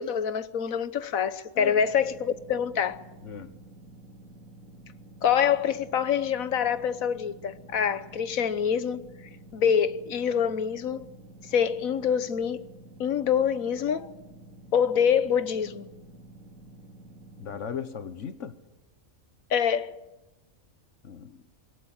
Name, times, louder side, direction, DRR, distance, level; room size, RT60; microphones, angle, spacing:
voice 1, 0.0-3.0 5.2-9.0 9.5-11.1 11.5-12.6 13.0-14.1 14.7-15.9 19.5-20.0, left 8 dB, 80° left, 1.5 m, -25 dB
sound 1, 1.6-17.6, right 2 dB, 85° right, 3.2 m, -50 dB
voice 2, 3.2-3.6 17.4-18.6 21.0-21.5, left 7 dB, 60° left, 1.6 m, -37 dB
22.0 x 18.0 x 9.0 m
omnidirectional pair, 1.4 m